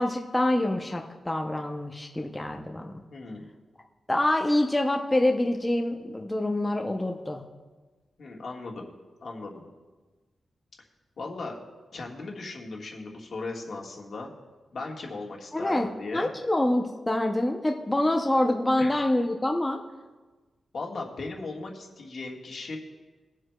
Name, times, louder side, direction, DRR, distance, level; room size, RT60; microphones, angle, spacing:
voice 1, 0.0-2.9 4.1-7.4 15.5-15.9 16.1-19.8, left 1 dB, 10° left, 2 dB, 0.5 m, -26 dB
voice 2, 3.1-3.5 8.2-8.9 9.2-9.7 11.2-11.6 11.9-14.3 14.7-16.3 18.8-19.1 20.7-22.8, left 3 dB, 50° left, -1 dB, 1.4 m, -37 dB
22.0 x 7.7 x 2.2 m, 1.3 s
wide cardioid pair, 180°, 0 cm